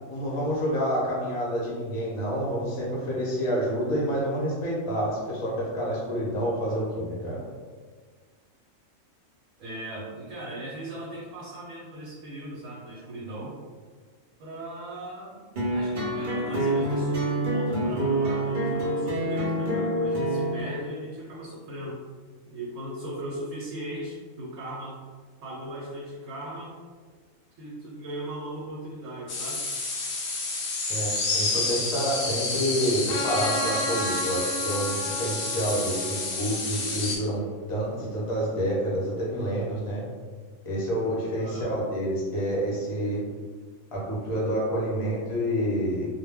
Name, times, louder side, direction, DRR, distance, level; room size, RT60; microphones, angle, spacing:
voice 1, 0.1-7.4 30.9-37.4 37.7-40.0 40.6-43.2 43.9-46.1, equal, 35° left, -5 dB, 0.6 m, -28 dB
voice 2, 9.6-13.6 14.4-22.0 22.5-25.0 25.4-26.8 27.6-29.7 41.4-41.7, right 1 dB, 80° right, -5 dB, 1.0 m, -38 dB
sound 1, 15.6-20.6, right 1 dB, 50° right, 0.6 m, -26 dB
sound 2, 29.3-37.2, left 3 dB, 65° left, 0.8 m, -29 dB
Trumpet, 33.1-37.7, right 1 dB, 85° left, 1.0 m, -35 dB
2.2 x 2.1 x 3.4 m, 1.5 s
omnidirectional pair, 1.4 m